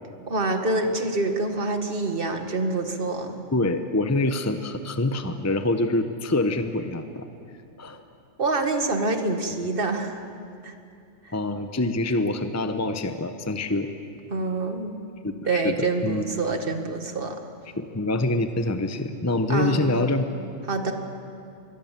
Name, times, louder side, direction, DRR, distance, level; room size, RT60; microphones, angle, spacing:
voice 1, 0.3-3.4 8.4-10.3 10.6-10.7 11.3-11.4 14.3-15.0 15.5-17.4 19.5-19.9 20.7-20.9, right 2 dB, 45° right, 6 dB, 1.9 m, -26 dB
voice 2, 3.5-7.2 7.8-8.0 11.3-13.9 15.2-15.7 16.0-16.2 17.8-20.3, left 2 dB, 15° left, 8 dB, 0.9 m, -25 dB
25.5 x 22.0 x 7.5 m, 2.5 s
omnidirectional pair, 1.3 m